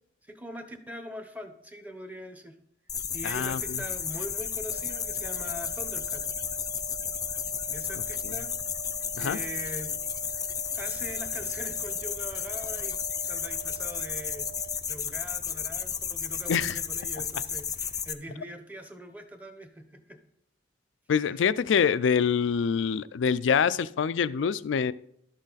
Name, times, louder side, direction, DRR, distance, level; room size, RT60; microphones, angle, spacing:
voice 1, 0.2-2.6 3.1-6.3 7.7-8.5 9.2-10.0 10.7-13.0 13.3-14.5 14.9-20.2 21.2-21.4, equal, 10° right, 7 dB, 0.9 m, -42 dB
sound 1, 2.9-18.1, left 7 dB, 20° left, 0.5 m, -33 dB
voice 2, 3.2-3.8 8.2-8.3 9.1-9.4 16.5-16.8 21.1-24.9, left 6 dB, 90° left, 17 dB, 0.4 m, -25 dB
sound 2, 4.7-14.7, right 9 dB, 75° right, 1.9 m, -46 dB
12.0 x 6.3 x 4.0 m, 0.72 s
head